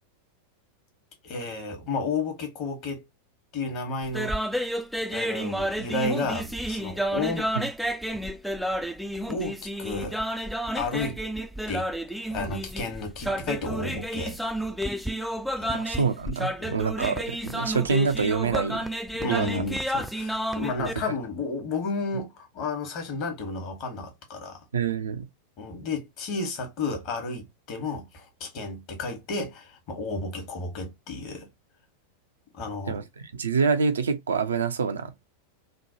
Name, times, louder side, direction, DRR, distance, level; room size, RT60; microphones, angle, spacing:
voice 1, 1.2-3.1 3.5-4.4 5.1-7.5 9.3-10.2 10.7-11.2 11.7-11.9 12.3-14.4 15.6-15.7 16.6-16.7 19.2-24.6 25.6-31.5 32.5-33.0, left 3 dB, 40° left, 1.1 m, -32 dB
sound 1, 4.0-20.9, equal, ahead, 0.3 m, -31 dB
voice 2, 15.7-18.9 19.3-19.6 20.8-20.9 24.7-25.3 32.9-35.2, right 5 dB, 70° right, 0.4 m, -26 dB
3.1 x 2.1 x 2.6 m
figure-of-eight pair, 90°, 0 cm